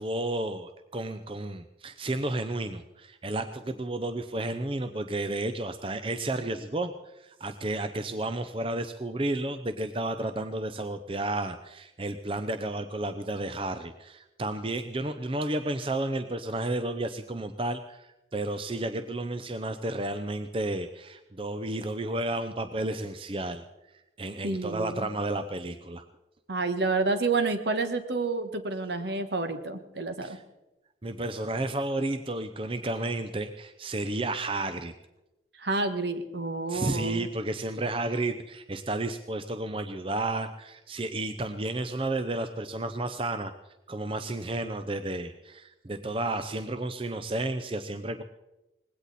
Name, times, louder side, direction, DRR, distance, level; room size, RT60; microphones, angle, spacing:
voice 1, 0.0-23.6 24.2-26.0 30.2-30.4 31.0-34.9 36.7-43.5 43.9-48.2, right 2 dB, 30° right, 9 dB, 0.6 m, -32 dB
voice 2, 24.4-25.1 26.5-30.4 35.6-37.3, right 3 dB, 70° right, 9 dB, 1.4 m, -29 dB
20.0 x 16.5 x 4.2 m, 1.0 s
head